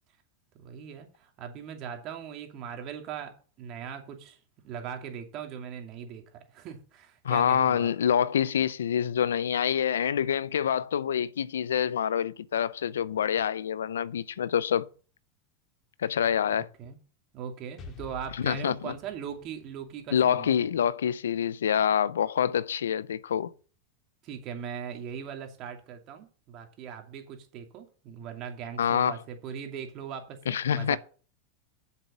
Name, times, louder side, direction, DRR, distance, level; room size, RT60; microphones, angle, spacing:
voice 1, 0.6-3.3 3.6-4.4 4.6-6.2 6.5-7.9 16.8-17.0 17.3-20.7 24.2-31.0, right 8 dB, 50° right, 2.6 m, -40 dB
voice 2, 7.2-14.9 16.0-16.7 18.4-18.9 20.1-23.5 28.8-29.1 30.5-31.0, left 8 dB, 85° left, 0.4 m, -26 dB
Explosion, 17.8-21.6, left 5 dB, 40° left, 2.0 m, -50 dB
7.5 x 6.9 x 6.8 m
hypercardioid pair, 100°, 0 cm